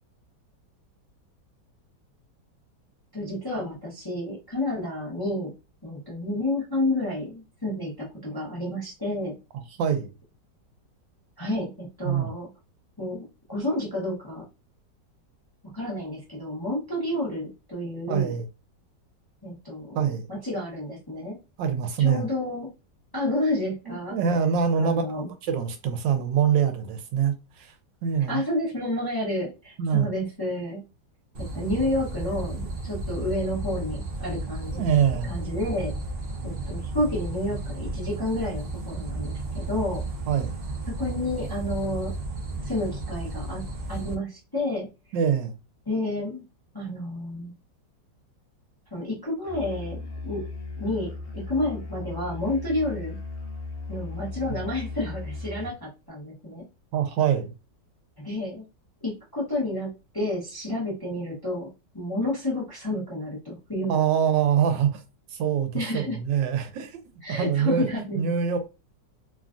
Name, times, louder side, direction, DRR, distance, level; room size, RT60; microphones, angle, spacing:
voice 1, 3.1-5.5 5.8-9.4 11.4-12.5 13.0-14.4 15.7-18.4 19.4-20.0 20.3-21.4 22.0-22.7 23.1-24.2 24.8-25.3 28.3-30.8 31.4-34.8 35.2-35.9 36.4-40.0 41.0-42.1 42.6-43.6 43.9-44.9 45.9-46.4 46.7-47.5 48.9-50.4 50.8-53.2 53.9-56.7 58.2-58.6 59.0-61.7 61.9-64.0 65.7-66.2 67.2-68.2, left 1 dB, 20° left, 0.7 m, -30 dB
voice 2, 9.8-10.1 12.0-12.3 18.1-18.4 19.9-20.3 21.6-22.3 23.9-27.7 28.0-28.4 29.8-30.1 34.7-35.3 40.3-40.6 45.1-45.5 54.5-54.6 56.9-57.5 63.9-65.0 65.3-67.0 67.3-67.9 68.1-68.6, right 8 dB, 85° right, 1.3 m, -24 dB
sound 1, 31.3-44.2, right 2 dB, 70° right, 0.5 m, -33 dB
Musical instrument, 49.4-55.8, left 3 dB, 50° left, 0.9 m, -36 dB
3.2 x 2.3 x 2.4 m
omnidirectional pair, 1.9 m